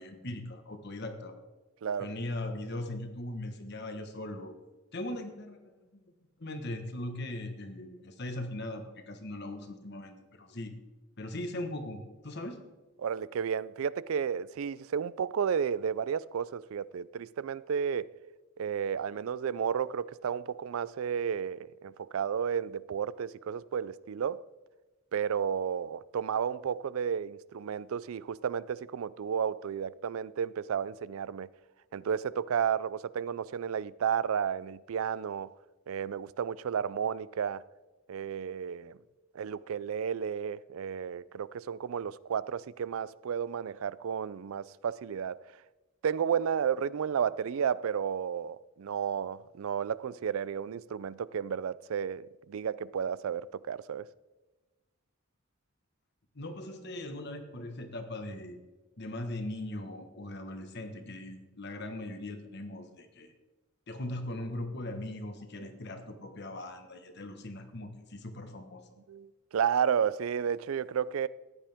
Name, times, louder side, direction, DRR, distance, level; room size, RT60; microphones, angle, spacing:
voice 1, 0.0-1.4 2.0-4.5 4.9-6.0 6.4-10.7 11.2-12.6 56.3-58.6 59.0-63.3 63.9-68.9, left 1 dB, 55° left, 1.4 m, -39 dB
voice 2, 13.0-18.1 18.6-24.4 25.1-31.5 31.9-35.5 35.9-37.6 38.1-39.0 39.3-45.4 46.0-54.1 65.6-65.7 69.1-71.3, right 7 dB, 85° right, 0.4 m, -32 dB
14.5 x 10.0 x 3.6 m
head